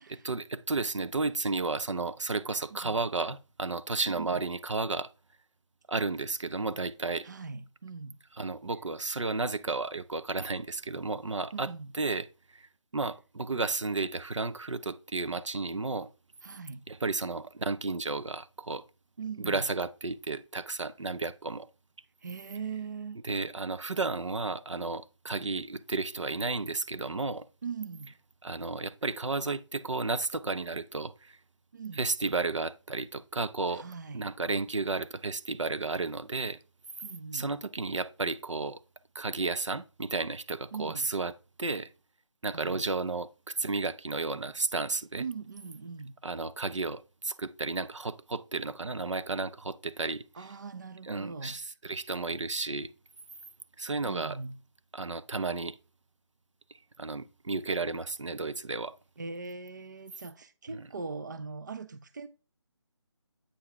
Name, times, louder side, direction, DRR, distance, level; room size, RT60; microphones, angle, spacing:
voice 1, 0.0-5.1 5.9-7.3 8.4-12.3 12.5-12.7 12.9-16.1 16.9-18.8 19.4-21.7 23.2-27.5 28.4-31.4 32.0-33.9 34.1-36.6 37.3-38.8 39.1-41.3 41.6-41.9 42.4-45.2 46.2-50.2 51.0-52.9 53.8-54.4 54.9-55.8 57.0-58.9 60.7-60.9, right 3 dB, 85° right, 0.7 m, -33 dB
voice 2, 4.1-4.4 7.2-8.2 11.5-11.9 16.4-16.9 19.2-19.7 22.2-23.2 27.6-28.1 31.7-32.1 33.7-34.3 37.0-37.5 40.7-41.1 42.5-42.8 45.2-46.1 50.3-51.6 54.0-54.6 59.2-62.3, right 5 dB, 40° right, 0.6 m, -40 dB
8.5 x 5.5 x 3.5 m
figure-of-eight pair, 165°, 15 cm